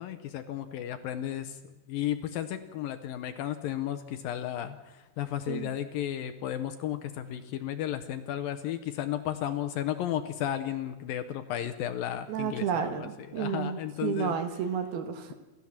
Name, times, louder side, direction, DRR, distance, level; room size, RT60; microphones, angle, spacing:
voice 1, 0.0-1.6 1.9-14.4, left 11 dB, 75° left, 10 dB, 2.3 m, -34 dB
voice 2, 12.3-15.3, right 7 dB, 70° right, 7 dB, 3.3 m, -32 dB
28.5 x 13.5 x 7.3 m, 1.1 s
omnidirectional pair, 4.7 m